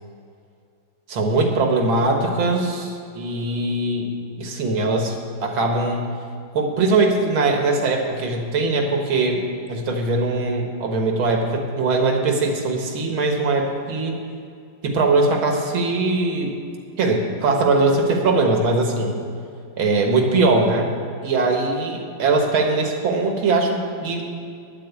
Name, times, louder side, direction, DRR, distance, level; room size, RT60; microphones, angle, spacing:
voice 1, 1.1-4.1 4.4-6.1 6.5-9.4 9.7-14.2 14.8-16.6 17.0-19.2 19.8-20.9 21.2-24.2, right 3 dB, 75° right, 2 dB, 2.2 m, -21 dB
11.0 x 8.5 x 8.2 m, 2.4 s
omnidirectional pair, 2.2 m